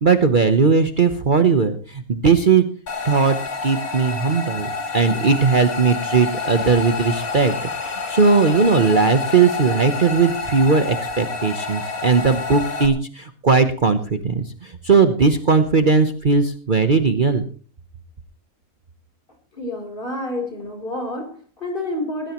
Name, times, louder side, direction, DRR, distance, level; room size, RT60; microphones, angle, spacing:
voice 1, 0.0-2.6 3.0-3.4 3.6-7.5 7.8-14.4 14.8-17.4, right 4 dB, 40° right, 1.0 m, -18 dB
sound 1, 2.9-12.9, left 4 dB, 80° left, 2.4 m, -28 dB
voice 2, 19.5-22.3, left 1 dB, 35° left, 3.8 m, -29 dB
20.0 x 15.5 x 3.1 m
omnidirectional pair, 1.5 m